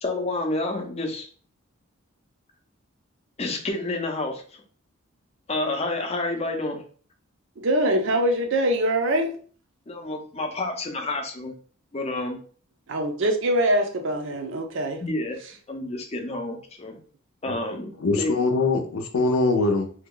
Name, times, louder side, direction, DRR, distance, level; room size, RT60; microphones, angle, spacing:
voice 1, 0.0-1.3 3.4-4.6 5.5-6.8 9.9-11.5 11.9-12.4 15.0-15.4 15.7-17.0 17.4-17.9 18.2-18.3, left 2 dB, 30° left, 0.5 m, -29 dB
voice 2, 7.6-9.3 12.9-15.0, right 1 dB, 60° right, 0.5 m, -23 dB
voice 3, 18.0-19.9, left 3 dB, 85° left, 0.6 m, -22 dB
2.8 x 2.2 x 3.7 m
head